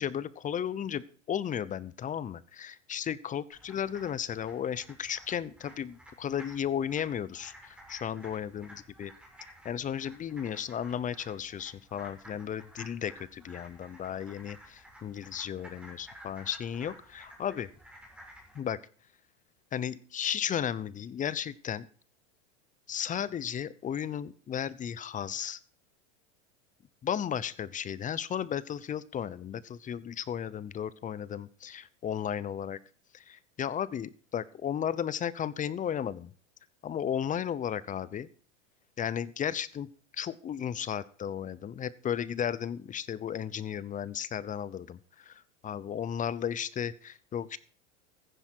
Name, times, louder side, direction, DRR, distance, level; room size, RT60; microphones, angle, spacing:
voice 1, 0.0-8.7 9.0-9.1 9.6-17.7 18.5-18.8 19.7-21.9 22.9-25.6 27.0-32.8 33.1-36.3 36.8-38.3 39.0-39.9 40.1-47.6, left 9 dB, 20° left, 19 dB, 0.8 m, -34 dB
sound 1, 3.5-18.6, equal, 5° right, 6.9 m, -53 dB
15.0 x 10.0 x 4.6 m, 0.43 s
supercardioid pair, 120°, 36 cm